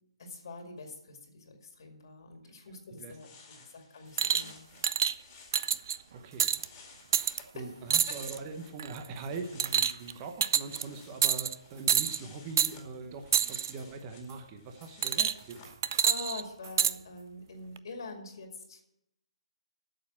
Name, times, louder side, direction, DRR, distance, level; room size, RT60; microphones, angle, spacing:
voice 1, 0.2-3.3 3.6-4.7 7.5-7.7 8.1-8.2 16.0-18.8, left 3 dB, 45° left, 4 dB, 2.1 m, -44 dB
sound 1, 2.7-2.8 3.0-8.8 9.1-15.8, left 5 dB, 20° left, 2.1 m, -56 dB
sound 2, 4.2-4.5 4.8-5.1 5.5-6.0 6.4-6.6 7.1-7.4 7.9-8.4 8.8-9.1 9.6-10.1 10.4-10.8 11.2-11.5 11.9-12.2 12.6-12.7 13.3-13.7 15.0-15.5 15.8-16.9 17.8-17.9, right 8 dB, 35° right, 0.3 m, -27 dB
voice 2, 5.8-6.6 7.5-15.7, right 4 dB, 15° right, 6 dB, 0.8 m, -42 dB
8.8 x 7.4 x 8.7 m, 0.82 s
hypercardioid pair, 170°, 3 cm